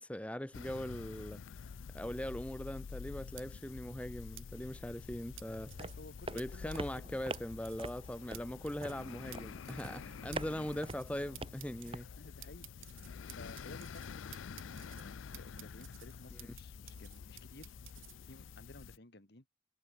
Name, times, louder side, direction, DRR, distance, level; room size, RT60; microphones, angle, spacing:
voice 1, 0.0-1.4 1.9-5.7 6.3-12.1, equal, 5° left, 0.8 m, -41 dB
sound 1, 0.5-19.0, left 6 dB, 75° left, 0.4 m, -48 dB
sound 2, 3.4-3.5 4.4-4.5 5.4-6.0 6.4-6.5 6.7-7.0 7.3-7.4 7.7-8.0 8.3-8.4 8.7-9.0 9.3-9.4 9.7-10.0 10.3-10.4 10.7-11.1 11.4-11.9 12.4-14.1 14.3-15.0 15.3-16.6 16.9-18.1, right 16 dB, 80° right, 2.2 m, -52 dB
sound 3, 5.5-12.0, right 2 dB, 25° right, 1.6 m, -46 dB
voice 2, 5.8-7.1 11.9-19.4, left 2 dB, 55° left, 1.9 m, -56 dB
head